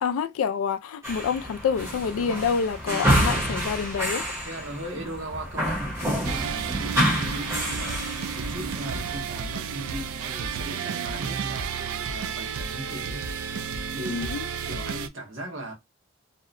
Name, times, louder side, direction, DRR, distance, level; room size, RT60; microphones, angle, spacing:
voice 1, 0.0-4.3 14.1-14.4, left 6 dB, 80° left, 0.3 m, -27 dB
sound 1, 1.0-9.2, equal, 15° right, 0.8 m, -28 dB
voice 2, 4.4-13.2 13.9-14.3 14.6-15.7, right 1 dB, 60° right, 1.0 m, -38 dB
sound 2, 6.2-15.1, right 6 dB, 85° right, 0.3 m, -32 dB
2.7 x 2.1 x 2.4 m
head